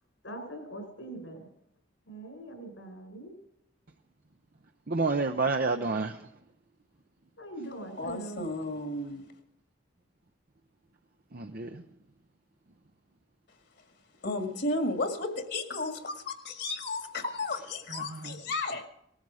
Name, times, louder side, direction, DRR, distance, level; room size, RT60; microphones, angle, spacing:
voice 1, 0.2-1.5 2.1-3.4 7.4-8.5, right 2 dB, 85° left, 5.3 m, -42 dB
voice 2, 4.9-6.3 11.3-11.8 17.9-18.4, right 3 dB, 50° right, 0.7 m, -30 dB
voice 3, 8.0-9.2 14.2-18.9, left 2 dB, 60° left, 1.9 m, -33 dB
19.0 x 14.0 x 4.9 m
head